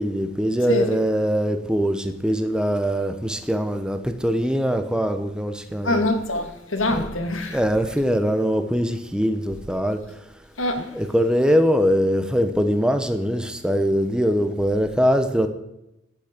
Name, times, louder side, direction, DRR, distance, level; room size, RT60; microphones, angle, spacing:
voice 1, 0.0-6.1 6.9-7.1 7.5-10.0 10.9-15.5, equal, 5° right, 0.9 m, -22 dB
voice 2, 5.8-7.6 10.6-10.9, left 1 dB, 80° left, 1.7 m, -24 dB
10.0 x 6.3 x 8.0 m
head